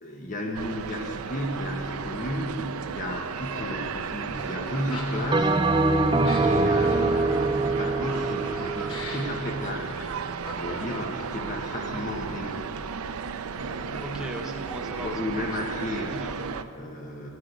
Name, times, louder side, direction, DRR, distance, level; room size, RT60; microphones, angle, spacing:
voice 1, 0.0-5.8 6.3-12.6 13.6-14.3 14.9-16.4 16.7-17.3, left 1 dB, 35° left, 0 dB, 1.3 m, -33 dB
sound 1, 0.5-16.6, right 6 dB, 85° right, 0.5 m, -35 dB
Laughter, 3.5-11.5, left 2 dB, 75° left, 2.8 m, -41 dB
Bell, 5.3-9.9, right 2 dB, 20° right, 0.4 m, -24 dB
voice 2, 14.0-15.1 15.4-16.7, equal, 5° right, 1 dB, 1.1 m, -40 dB
14.5 x 10.5 x 8.2 m, 2.5 s
head